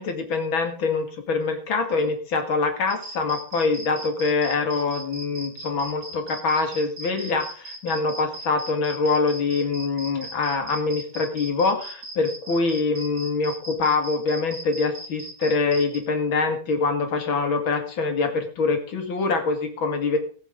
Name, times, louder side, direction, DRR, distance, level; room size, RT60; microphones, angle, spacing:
voice 1, 0.0-20.2, left 4 dB, 70° left, 5 dB, 2.8 m, -24 dB
sound 1, 2.9-16.0, right 2 dB, 55° right, 2.7 m, -38 dB
19.5 x 7.4 x 3.7 m, 0.42 s
omnidirectional pair, 2.2 m